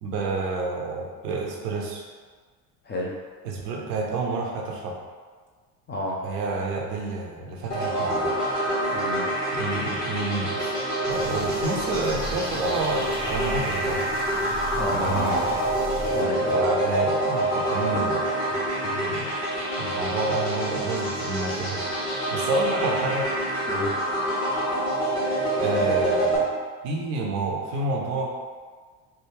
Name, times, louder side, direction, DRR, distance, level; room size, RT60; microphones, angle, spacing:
voice 1, 0.0-2.0 3.4-5.0 6.2-8.3 9.5-10.7 11.1-14.0 14.9-15.4 16.5-18.2 19.1-19.3 19.8-21.8 22.3-23.3 25.6-26.4 26.8-28.4, right 3 dB, 70° right, -1 dB, 0.8 m, -29 dB
voice 2, 2.8-3.2 5.9-6.2 8.1-8.3 8.9-9.3 14.8-15.7 16.1-16.6 17.9-18.0 18.5-18.6 18.8-19.3 23.7-24.1, left 1 dB, 20° left, -3 dB, 0.5 m, -32 dB
sound 1, 7.7-26.4, right 1 dB, 80° left, 1.3 m, -26 dB
sound 2, 11.1-16.2, right 2 dB, 20° right, 0.6 m, -38 dB
3.5 x 2.2 x 3.1 m, 1.5 s
figure-of-eight pair, 60°, 49 cm